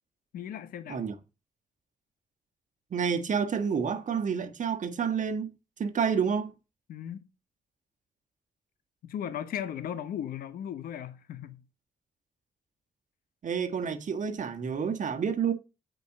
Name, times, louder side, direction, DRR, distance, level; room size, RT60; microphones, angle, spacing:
voice 1, 0.3-1.1 6.9-7.2 9.0-11.6, left 9 dB, 80° left, 1.1 m, -37 dB
voice 2, 2.9-6.5 13.4-15.5, right 6 dB, 60° right, 1.4 m, -29 dB
8.4 x 5.3 x 6.5 m
supercardioid pair, 50°, 15 cm